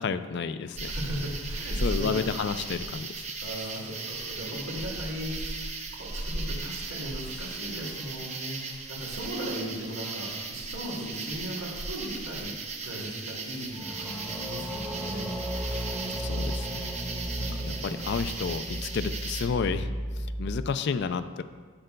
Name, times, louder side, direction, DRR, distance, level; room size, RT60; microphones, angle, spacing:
voice 1, 0.0-0.9 1.8-3.1 15.7-15.8 16.2-16.9 17.4-21.4, left 5 dB, 50° left, 11 dB, 0.3 m, -31 dB
sound 1, 0.7-19.5, right 3 dB, 30° right, 0.6 m, -36 dB
voice 2, 0.9-2.2 3.4-16.2 17.2-17.8, equal, 75° right, -4 dB, 2.4 m, -38 dB
sound 2, 7.5-8.6 13.7-20.7, equal, 10° right, 1.0 m, -35 dB
12.5 x 7.7 x 2.2 m, 1.5 s
head